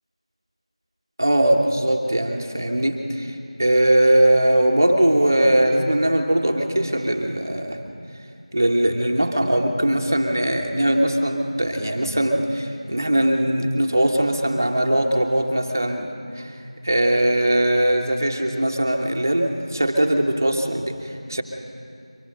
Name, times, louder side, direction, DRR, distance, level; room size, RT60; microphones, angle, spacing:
voice 1, 1.2-7.8 8.5-16.6 16.8-21.4, right 1 dB, 30° right, 3 dB, 1.3 m, -20 dB
24.5 x 21.0 x 6.6 m, 2.5 s
figure-of-eight pair, 180°, 3 cm